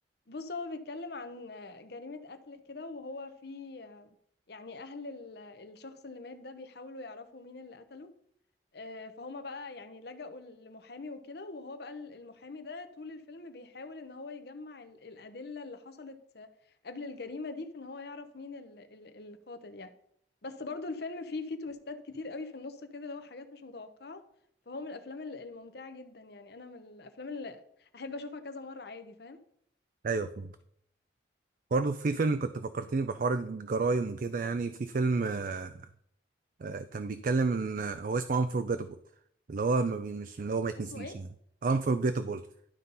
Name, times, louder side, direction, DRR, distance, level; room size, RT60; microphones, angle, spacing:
voice 1, 0.3-4.1 4.5-8.1 8.7-16.5 16.8-19.9 20.4-24.2 24.7-29.4 40.9-41.2, left 3 dB, 65° left, 0.9 m, -42 dB
voice 2, 30.0-30.5 31.7-35.8 36.6-39.0 39.5-41.2 41.6-42.5, right 3 dB, 50° right, 0.4 m, -30 dB
11.5 x 4.0 x 5.5 m
head